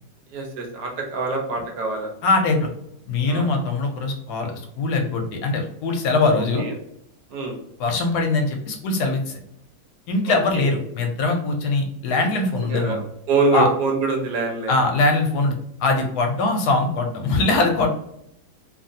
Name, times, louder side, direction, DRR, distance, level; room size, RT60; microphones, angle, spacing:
voice 1, 0.3-2.1 3.3-3.5 6.6-6.7 7.3-7.6 10.2-10.7 12.6-14.8, right 3 dB, 75° right, 1 dB, 1.2 m, -25 dB
voice 2, 2.2-2.7 3.1-6.7 7.8-9.4 10.1-13.0 13.5-13.7 14.7-15.5 15.8-17.9, left 3 dB, 75° left, 3 dB, 1.0 m, -22 dB
2.9 x 2.5 x 2.6 m, 0.76 s
omnidirectional pair, 1.9 m